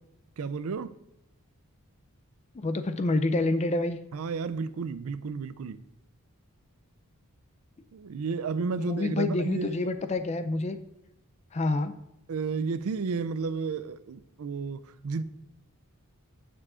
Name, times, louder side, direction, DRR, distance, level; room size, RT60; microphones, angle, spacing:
voice 1, 0.4-1.0 4.1-5.9 7.9-9.9 12.3-15.2, right 5 dB, 70° right, 0.4 m, -32 dB
voice 2, 2.5-4.0 8.8-10.8 11.5-11.9, left 2 dB, 30° left, 0.4 m, -27 dB
6.8 x 6.7 x 3.6 m
head